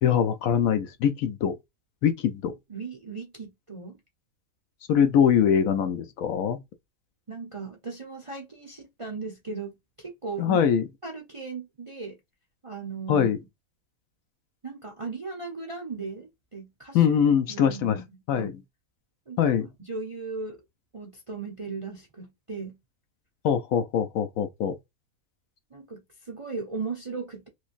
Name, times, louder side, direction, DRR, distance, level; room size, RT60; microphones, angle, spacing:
voice 1, 0.0-1.5 2.0-2.5 4.9-6.6 10.4-10.8 13.1-13.4 16.9-18.0 18.3-18.6 19.4-19.7 23.4-24.7, left 8 dB, 70° left, 1.0 m, -23 dB
voice 2, 2.7-4.0 7.3-10.6 11.0-12.2 12.6-13.3 14.6-17.0 17.5-18.5 19.3-19.5 19.8-20.6 20.9-22.8 25.7-27.5, right 4 dB, 35° right, 0.5 m, -37 dB
3.1 x 3.0 x 2.5 m
omnidirectional pair, 1.6 m